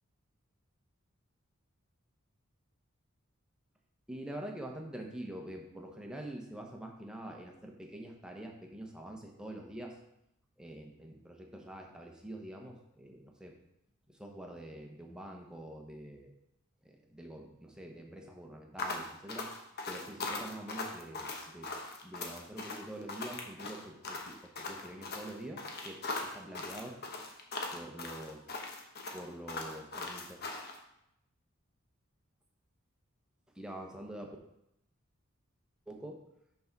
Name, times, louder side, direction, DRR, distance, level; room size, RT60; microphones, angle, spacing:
voice 1, 4.1-9.9 10.6-13.5 14.2-16.3 16.8-19.5 19.9-21.7 22.0-24.4 24.7-27.0 27.7-28.4 29.1-30.4 33.6-34.4 35.9-36.2, right 1 dB, 5° right, 1 dB, 1.1 m, -45 dB
sound 1, 18.8-30.8, left 3 dB, 50° left, 1.1 m, -40 dB
6.2 x 4.6 x 6.0 m, 0.80 s
head